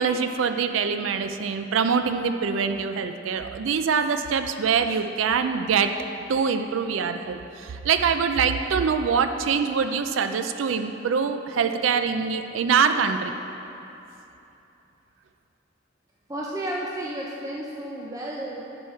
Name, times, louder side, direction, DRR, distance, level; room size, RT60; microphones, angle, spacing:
voice 1, 0.0-5.9 6.3-13.3, right 6 dB, 90° right, 8 dB, 0.4 m, -24 dB
voice 2, 16.3-18.6, right 1 dB, 15° right, -4 dB, 0.6 m, -32 dB
10.5 x 6.2 x 4.4 m, 2.9 s
head